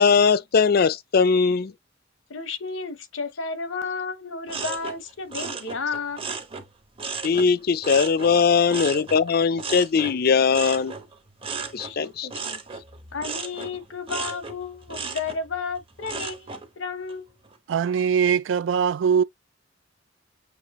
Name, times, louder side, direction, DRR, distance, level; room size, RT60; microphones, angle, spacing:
voice 1, 0.0-1.7 7.2-10.9 11.7-12.3, left 5 dB, 50° left, 0.4 m, -20 dB
voice 2, 2.3-6.3 11.7-12.6 13.1-17.3, left 4 dB, 90° left, 0.9 m, -32 dB
sound 1, 4.5-7.5 7.8-16.7 17.1-17.6, right 4 dB, 30° right, 0.9 m, -35 dB
voice 3, 17.7-19.2, right 7 dB, 70° right, 0.3 m, -21 dB
6.7 x 2.6 x 3.0 m
head